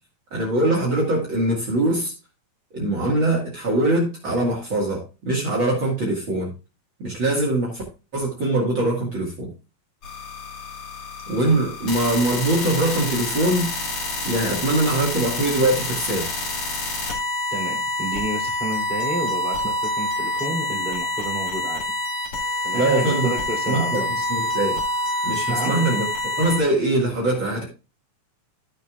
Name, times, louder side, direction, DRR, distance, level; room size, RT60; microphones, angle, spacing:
voice 1, 0.3-2.1 2.7-6.5 7.0-7.8 8.1-9.5 11.3-13.7 14.2-16.2 22.7-23.3 23.7-24.8 25.2-26.0 26.4-27.6, right 1 dB, 45° right, -3 dB, 2.4 m, -22 dB
sound 1, 10.0-26.6, left 2 dB, 50° left, 3.1 m, -27 dB
voice 2, 17.5-21.8 22.6-24.3 25.5-25.7, right 2 dB, ahead, -1 dB, 2.6 m, -30 dB
14.0 x 6.8 x 2.4 m, 0.32 s
omnidirectional pair, 3.5 m